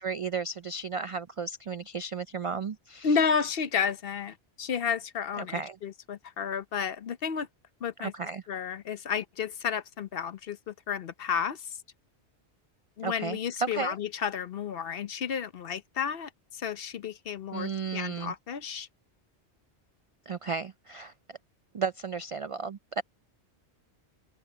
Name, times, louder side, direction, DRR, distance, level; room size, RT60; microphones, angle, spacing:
voice 1, 0.0-3.2 5.4-5.8 8.0-8.4 13.0-13.9 17.5-18.3 20.3-21.4 21.7-23.0, right 5 dB, 60° right, 0.3 m, -34 dB
voice 2, 3.0-7.5 7.8-8.1 8.5-11.8 13.0-18.9, left 6 dB, 60° left, 0.9 m, -32 dB
omnidirectional pair, 1.1 m